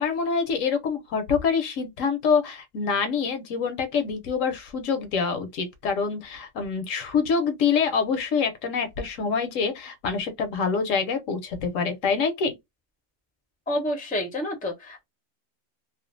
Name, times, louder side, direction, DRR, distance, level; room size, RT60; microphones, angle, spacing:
voice 1, 0.0-12.6, left 5 dB, 70° left, 0.9 m, -26 dB
voice 2, 13.7-15.0, left 1 dB, 10° left, 0.4 m, -29 dB
2.4 x 2.3 x 2.4 m
omnidirectional pair, 1.5 m